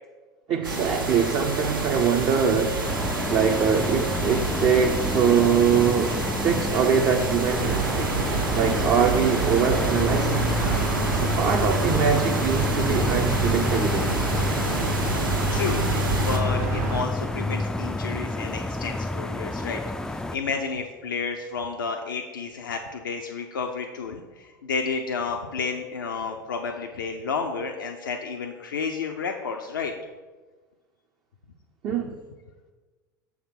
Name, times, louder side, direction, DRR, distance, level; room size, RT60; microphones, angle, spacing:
voice 1, 0.5-2.8 3.3-6.2 6.4-8.1 8.5-10.5 11.2-14.2 31.8-32.1, right 7 dB, 40° right, 2 dB, 0.6 m, -23 dB
sound 1, 0.6-16.4, right 2 dB, 90° right, 1.2 m, -29 dB
sound 2, 2.9-20.4, left 2 dB, 5° left, 0.3 m, -29 dB
sound 3, 7.5-17.0, right 5 dB, 60° right, 1.1 m, -29 dB
voice 2, 15.5-29.9, left 5 dB, 75° left, 3 dB, 0.5 m, -31 dB
7.0 x 3.5 x 5.7 m, 1.3 s
figure-of-eight pair, 80°, 11 cm